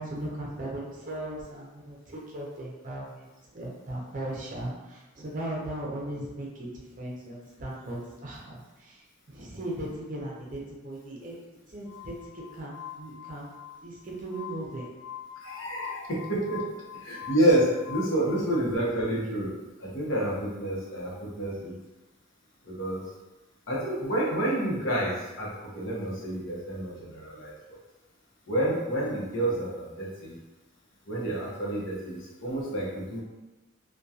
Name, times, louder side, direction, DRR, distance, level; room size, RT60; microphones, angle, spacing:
voice 1, 0.0-3.3 3.5-11.3 11.7-13.6 13.8-14.9, right 1 dB, 40° right, -3 dB, 0.6 m, -38 dB
Glass, 11.9-18.6, left 9 dB, 85° left, 0.3 m, -43 dB
voice 2, 15.4-19.5 19.8-21.7 22.7-23.0 23.7-25.5 25.7-27.8 28.5-30.3 31.1-33.2, right 1 dB, 65° left, -5 dB, 0.8 m, -29 dB
2.7 x 2.2 x 2.3 m, 1.1 s
head